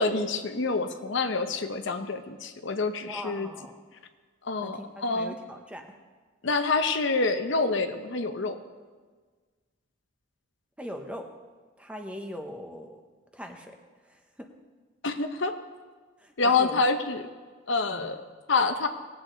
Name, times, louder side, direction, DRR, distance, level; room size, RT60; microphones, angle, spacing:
voice 1, 0.0-3.5 4.4-5.4 6.4-8.6 15.0-15.5 16.4-17.2 17.7-18.2 18.5-18.9, left 3 dB, 60° left, 8 dB, 0.7 m, -27 dB
voice 2, 3.1-3.8 4.6-6.0 10.8-11.4 11.8-13.0 13.3-14.5 16.2-16.8 17.9-18.1, equal, 5° right, 4 dB, 0.8 m, -41 dB
19.5 x 8.0 x 3.9 m, 1.5 s
head